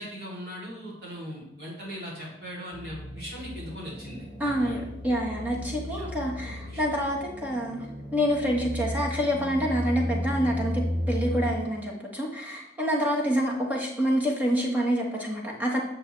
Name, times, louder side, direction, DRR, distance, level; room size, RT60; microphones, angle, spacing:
voice 1, 0.0-4.8 6.0-6.1 6.4-6.8, equal, 60° right, -5 dB, 3.2 m, -39 dB
sound 1, 2.7-11.5, equal, 75° right, 3.3 m, -34 dB
voice 2, 4.4-7.9 8.1-15.8, equal, 10° right, -2 dB, 1.4 m, -27 dB
9.0 x 6.6 x 3.3 m, 0.86 s
head